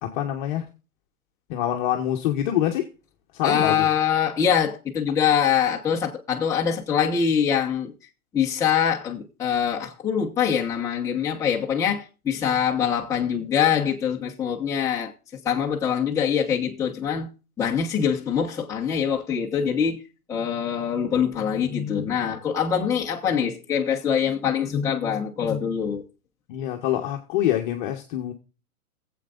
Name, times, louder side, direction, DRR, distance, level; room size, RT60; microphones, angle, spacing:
voice 1, 0.0-0.7 1.5-2.9 3.3-3.9 26.5-28.3, left 11 dB, 35° left, 1.2 m, -25 dB
voice 2, 3.4-7.9 8.3-15.1 15.4-17.3 17.6-20.0 20.3-26.0, left 8 dB, 5° left, 1.1 m, -24 dB
21.0 x 8.1 x 2.5 m
hypercardioid pair, 160°, 44 cm